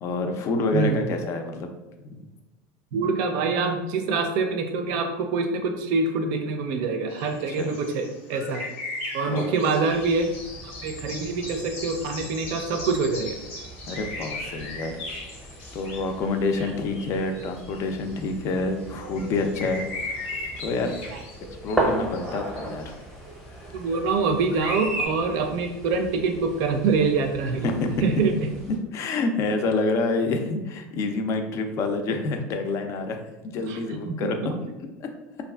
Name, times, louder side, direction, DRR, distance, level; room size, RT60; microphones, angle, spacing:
voice 1, 0.0-1.7 2.0-2.2 7.5-7.8 9.3-9.6 13.9-15.0 15.7-20.3 20.6-21.0 21.6-22.9 27.5-28.0 28.9-33.2 33.4-35.1, left 3 dB, 45° left, 5 dB, 0.4 m, -27 dB
voice 2, 2.9-8.7 9.1-10.3 10.6-13.4 23.7-27.7 28.0-28.3 33.7-33.8 34.1-34.2 34.4-34.6, right 4 dB, 65° right, 5 dB, 0.4 m, -25 dB
Soundscape Featuring Blackbird, 7.1-18.5 18.8-22.9 23.5-24.2 24.5-25.1, left 2 dB, 75° left, 0.7 m, -37 dB
sound 1, 9.9-28.8, right 1 dB, 5° left, 0.7 m, -37 dB
2.6 x 2.3 x 2.2 m, 1.0 s
supercardioid pair, 100°, 7 cm